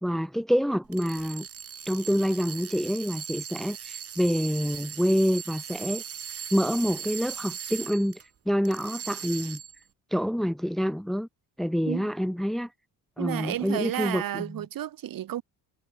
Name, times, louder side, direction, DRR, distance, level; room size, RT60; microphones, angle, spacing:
voice 1, 0.0-1.5 1.9-6.0 6.5-8.2 8.5-9.6 10.1-11.3 11.6-12.7 13.2-14.5, equal, ahead, 1.4 m, -27 dB
sound 1, 0.8-8.2 8.6-9.8, right 8 dB, 40° right, 2.8 m, -39 dB
voice 2, 13.2-15.4, right 12 dB, 60° right, 3.9 m, -32 dB
cardioid pair, 145°, 38 cm